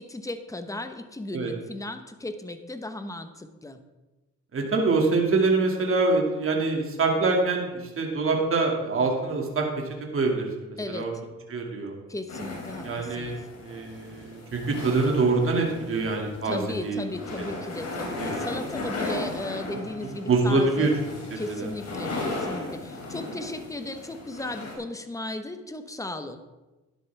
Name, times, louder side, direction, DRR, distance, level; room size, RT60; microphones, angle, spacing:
voice 1, 0.0-3.8 10.8-11.1 12.1-13.4 16.4-20.9 21.4-26.4, left 2 dB, 10° left, 8 dB, 1.1 m, -36 dB
voice 2, 4.5-9.7 10.1-11.1 11.5-12.0 12.8-17.0 17.4-17.5 18.2-18.5 20.3-20.9 21.3-21.7 22.1-22.2, right 3 dB, 45° right, 0 dB, 2.4 m, -25 dB
sound 1, 12.3-24.7, left 2 dB, 60° left, 3.4 m, -36 dB
12.0 x 10.5 x 3.5 m, 1.1 s
cardioid pair, 90°, 30 cm